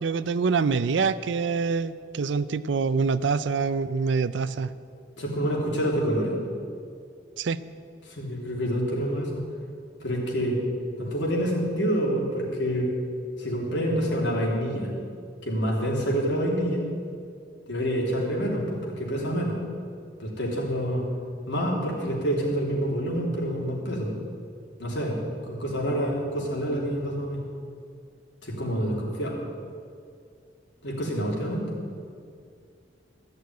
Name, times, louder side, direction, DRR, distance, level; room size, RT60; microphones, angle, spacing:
voice 1, 0.0-4.7 7.4-7.6, right 5 dB, 75° right, 15 dB, 0.5 m, -25 dB
voice 2, 5.2-6.4 8.0-9.4 10.0-10.6 11.0-12.9 13.4-14.9 15.4-16.9 17.7-19.5 20.2-21.0 21.5-24.2 24.8-27.4 28.4-29.4 30.8-31.6, equal, 75° left, -3 dB, 3.2 m, -27 dB
14.5 x 6.6 x 9.2 m, 2.3 s
head